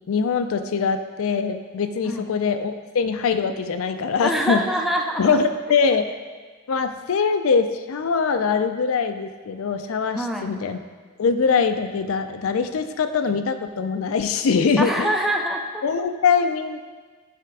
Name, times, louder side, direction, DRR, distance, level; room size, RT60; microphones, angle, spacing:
voice 1, 0.1-4.6 5.2-6.1 6.7-10.8 11.2-15.1 15.8-16.8, left 5 dB, 70° left, 9 dB, 0.4 m, -22 dB
voice 2, 4.2-5.4 10.1-10.5 14.8-15.8, right 1 dB, ahead, 2 dB, 0.4 m, -25 dB
9.1 x 3.4 x 4.7 m, 1.4 s
head